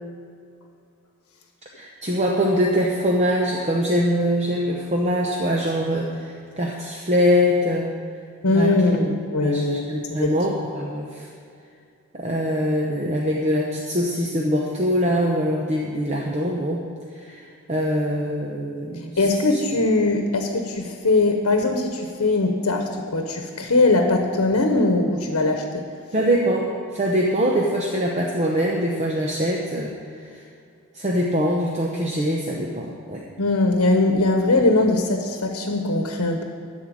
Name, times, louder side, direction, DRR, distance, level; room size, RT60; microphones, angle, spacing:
voice 1, 1.7-7.9 8.5-8.7 9.0-9.1 9.4-11.3 12.1-16.8 17.1-19.2 19.5-19.6 26.1-30.0 30.2-30.4 30.9-33.2, equal, 30° right, -2 dB, 0.8 m, -23 dB
voice 2, 8.4-10.3 19.2-25.9 33.4-36.4, left 2 dB, 85° left, 4 dB, 1.0 m, -21 dB
13.0 x 4.5 x 8.7 m, 2.3 s
head